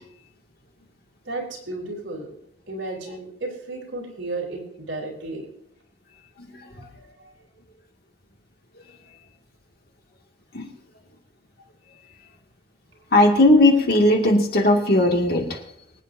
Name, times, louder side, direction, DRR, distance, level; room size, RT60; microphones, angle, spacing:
voice 1, 1.2-2.3 2.7-5.5 6.6-6.7 7.2-7.3, right 2 dB, 70° right, -2 dB, 4.2 m, -33 dB
voice 2, 13.1-15.6, left 1 dB, 50° left, 2 dB, 2.3 m, -17 dB
25.0 x 9.1 x 2.7 m, 0.74 s
head